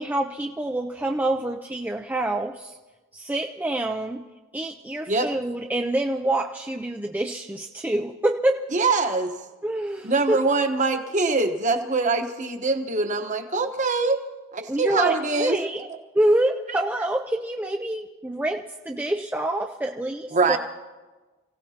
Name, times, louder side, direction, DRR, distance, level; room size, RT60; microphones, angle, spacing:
voice 1, 0.0-2.8 3.1-4.2 4.5-8.6 9.6-10.4 14.7-15.9 16.1-20.6, right 1 dB, 10° right, 3 dB, 0.4 m, -26 dB
voice 2, 8.7-9.3 10.0-14.2 14.5-15.6 20.3-20.6, right 3 dB, 35° right, 5 dB, 1.1 m, -23 dB
29.0 x 17.0 x 2.9 m, 1.3 s
head